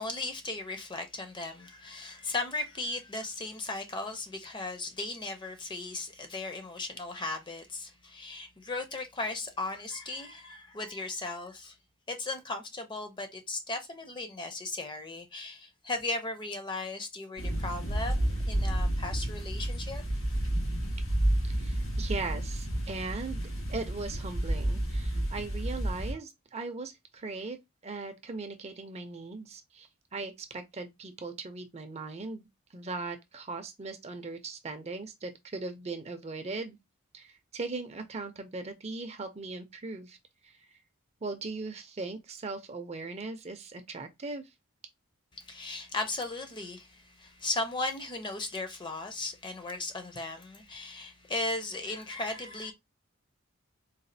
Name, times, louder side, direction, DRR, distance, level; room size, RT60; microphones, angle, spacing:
voice 1, 0.0-11.8 12.1-20.0 45.3-52.7, left 2 dB, 20° left, 0.5 m, -36 dB
sound 1, 17.4-26.1, right 1 dB, 85° left, 2.4 m, -30 dB
voice 2, 21.4-27.6 27.8-36.8 37.1-40.2 40.4-40.8 41.2-44.5, right 3 dB, 30° right, 0.4 m, -39 dB
4.0 x 2.3 x 2.6 m
head